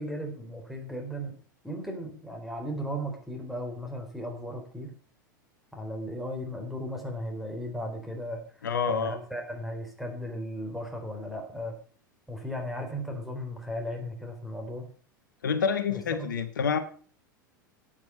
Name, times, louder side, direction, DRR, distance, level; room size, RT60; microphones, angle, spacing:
voice 1, 0.0-1.4 1.6-4.9 5.7-8.4 8.9-11.7 12.3-14.9 15.9-16.3, equal, ahead, 2 dB, 3.7 m, -36 dB
voice 2, 8.6-9.2 15.4-16.8, left 6 dB, 70° left, 10 dB, 1.2 m, -27 dB
10.5 x 9.1 x 5.8 m, 0.43 s
figure-of-eight pair, 85°, 11 cm